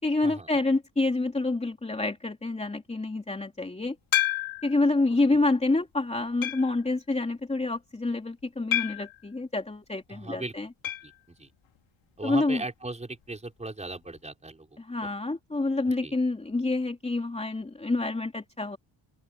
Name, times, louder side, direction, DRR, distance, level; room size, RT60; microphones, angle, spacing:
voice 1, 0.0-3.9 4.6-10.7 12.2-12.6 14.8-18.8, left 2 dB, 15° left, 3.0 m, -27 dB
sound 1, 4.1-4.8 5.4-5.5 6.4-6.8 8.7-9.2 10.8-11.1 11.4-11.5 11.8-11.9 13.9-14.0, left 14 dB, 85° left, 3.9 m, -29 dB
voice 2, 10.1-10.5 11.0-11.1 11.4-11.5 12.2-14.7 16.0-16.1, right 2 dB, 15° right, 4.9 m, -37 dB
open air
wide cardioid pair, 165°, 46 cm